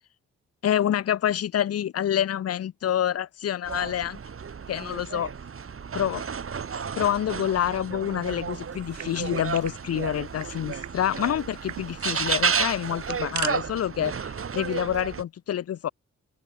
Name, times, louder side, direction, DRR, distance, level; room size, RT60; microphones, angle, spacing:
voice 1, 0.6-4.2 4.7-5.3 5.9-6.2 7.0-15.9, left 10 dB, 45° left, 0.6 m, -27 dB
sound 1, 3.7-15.2, right 6 dB, 40° right, 1.3 m, -32 dB
sound 2, 8.7-9.8 10.0-10.1 10.4-10.9 11.2-11.3 11.7-11.9 12.8-13.5, right 12 dB, 55° right, 0.7 m, -37 dB
sound 3, 11.8-15.2, right 2 dB, 20° right, 3.0 m, -55 dB
open air
hypercardioid pair, 45°, 34 cm